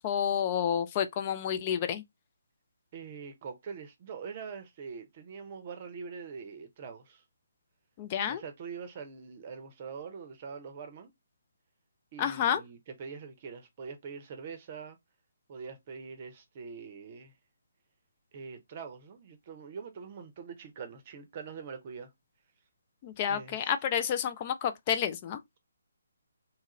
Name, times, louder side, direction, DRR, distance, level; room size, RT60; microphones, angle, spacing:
voice 1, 0.0-2.0 8.0-8.4 12.2-12.6 23.0-25.4, left 8 dB, 30° left, 0.4 m, -30 dB
voice 2, 2.9-7.2 8.2-11.1 12.1-15.0 15.5-17.3 18.3-22.1 23.3-23.7, right 5 dB, 35° right, 0.6 m, -43 dB
2.9 x 2.4 x 2.8 m
figure-of-eight pair, 145°, 0 cm